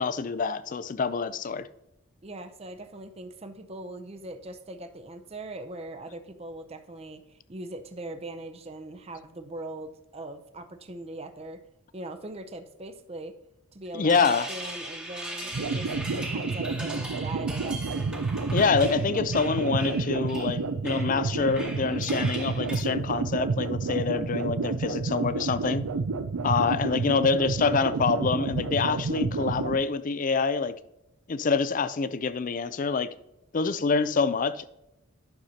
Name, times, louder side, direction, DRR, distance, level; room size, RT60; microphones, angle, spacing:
voice 1, 0.0-1.7 13.9-14.5 18.5-25.9 26.4-30.7 31.3-33.1 33.5-34.7, left 5 dB, 35° left, 0.4 m, -26 dB
voice 2, 2.2-11.6 11.9-13.4 13.7-17.8, right 2 dB, 25° right, 0.5 m, -41 dB
sound 1, 13.9-22.8, right 1 dB, 5° right, 1.0 m, -39 dB
sound 2, 15.5-29.8, right 4 dB, 90° right, 0.5 m, -30 dB
10.5 x 6.5 x 2.8 m
head